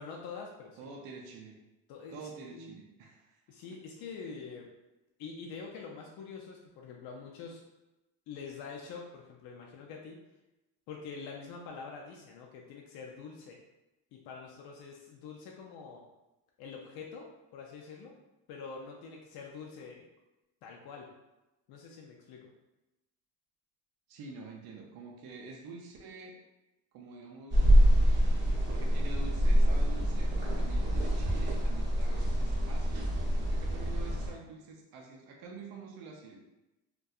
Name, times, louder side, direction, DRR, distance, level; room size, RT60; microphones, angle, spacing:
voice 1, 0.0-0.8 1.9-2.7 3.5-4.7 5.2-7.6 8.3-10.2 10.9-13.6 14.1-16.0 16.6-17.3 17.5-18.1 18.5-20.1 20.6-21.1 21.7-22.5, left 5 dB, 60° left, -1 dB, 0.5 m, -45 dB
voice 2, 0.8-1.6 2.1-3.4 24.1-26.4 26.9-27.8 28.7-33.2 33.5-36.4, right 3 dB, 60° right, 0 dB, 0.5 m, -47 dB
sound 1, 27.5-34.3, equal, 25° right, 0.7 m, -26 dB
2.6 x 2.2 x 2.3 m, 0.97 s
cardioid pair, 130°, 42 cm